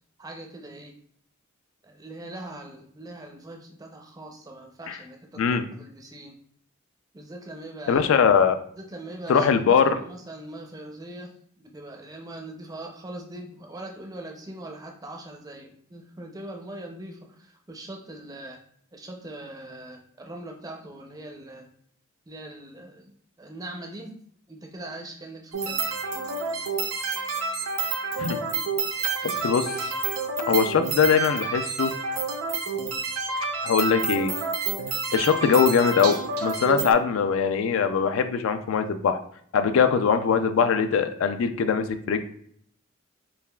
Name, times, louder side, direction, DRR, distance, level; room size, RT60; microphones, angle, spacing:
voice 1, 0.2-1.0 1.8-6.4 7.1-8.0 8.8-9.5 10.0-11.3 11.6-18.6 18.9-21.7 22.3-23.1 23.4-24.1 24.5-25.8, right 1 dB, 20° right, 2 dB, 0.4 m, -41 dB
voice 2, 7.9-8.6 9.3-10.0 28.2-28.4 29.2-29.7 30.5-31.9 33.6-34.3 35.1-36.2 36.4-39.2 39.5-42.2, left 6 dB, 70° left, 9 dB, 0.3 m, -21 dB
sound 1, 25.5-36.9, right 4 dB, 85° right, 0.6 m, -29 dB
5.5 x 2.4 x 2.2 m, 0.63 s
head